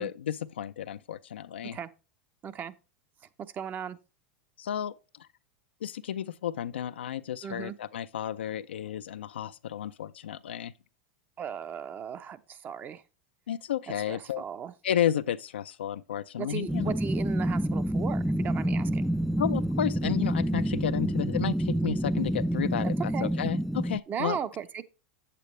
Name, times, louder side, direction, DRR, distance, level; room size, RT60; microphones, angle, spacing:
voice 1, 0.0-1.8 4.6-4.9 5.2-5.3 5.8-10.7 13.5-14.4 14.8-16.9 19.4-24.4, left 10 dB, 85° left, 0.4 m, -32 dB
voice 2, 2.4-2.7 3.5-4.0 7.4-7.8 11.4-13.0 14.1-14.7 16.4-19.1 23.1-23.3 24.1-24.8, right 8 dB, 30° right, 0.7 m, -36 dB
sound 1, 16.7-24.0, right 1 dB, ahead, 0.3 m, -28 dB
8.3 x 8.0 x 3.1 m
hypercardioid pair, 105°, 6 cm